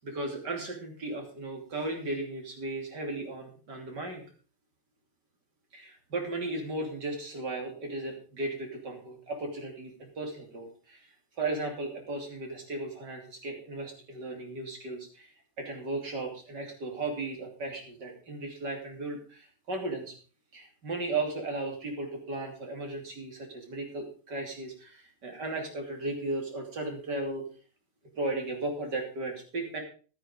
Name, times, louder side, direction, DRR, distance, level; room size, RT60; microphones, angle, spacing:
voice 1, 0.0-4.2 5.7-20.1 20.5-27.4 28.2-29.8, right 2 dB, 85° right, 2 dB, 3.7 m, -36 dB
13.0 x 9.3 x 5.2 m, 0.38 s
omnidirectional pair, 1.8 m